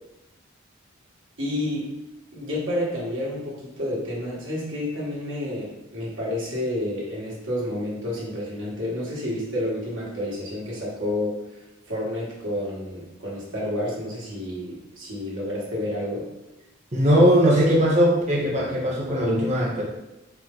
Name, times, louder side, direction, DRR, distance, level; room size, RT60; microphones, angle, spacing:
voice 1, 1.4-1.9 2.3-11.4 11.9-16.3, left 1 dB, 70° right, -5 dB, 1.4 m, -30 dB
voice 2, 16.9-19.8, equal, 35° right, -3 dB, 0.9 m, -19 dB
4.5 x 2.1 x 3.7 m, 0.98 s
head